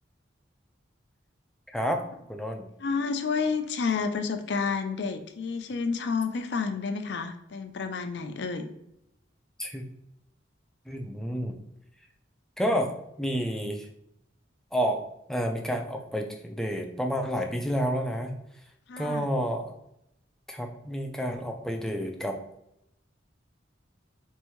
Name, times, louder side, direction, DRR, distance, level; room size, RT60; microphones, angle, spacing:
voice 1, 1.7-2.0 2.3-2.6 9.6-9.8 10.9-11.5 12.6-13.9 14.7-18.3 19.0-19.8 20.5-22.4, equal, 5° left, 3 dB, 0.4 m, -30 dB
voice 2, 2.8-8.7 18.9-19.3, left 5 dB, 60° left, 7 dB, 0.4 m, -30 dB
4.5 x 2.6 x 3.0 m, 0.81 s
head